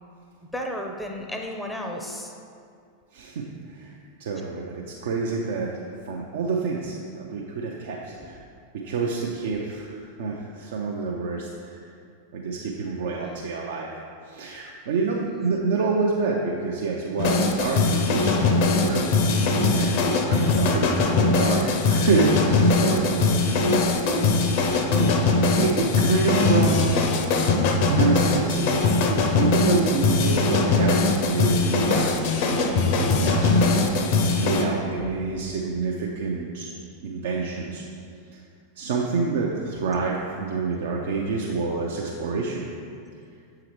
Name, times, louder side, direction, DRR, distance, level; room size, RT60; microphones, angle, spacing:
voice 1, 0.5-2.3 8.2-8.3 13.0-13.4 15.4-15.6 35.0-35.1, equal, 5° left, 2 dB, 0.6 m, -34 dB
voice 2, 3.1-5.7 6.0-8.4 8.8-11.9 12.3-13.9 14.3-19.0 19.7-20.8 21.1-27.2 27.9-28.9 29.4-36.7 37.0-37.8 38.3-38.4 38.8-42.7, right 4 dB, 55° right, -2 dB, 0.5 m, -28 dB
sound 1, 17.2-34.6, left 3 dB, 50° left, 0.6 m, -21 dB
7.5 x 4.8 x 3.1 m, 2.3 s
figure-of-eight pair, 90°, 0 cm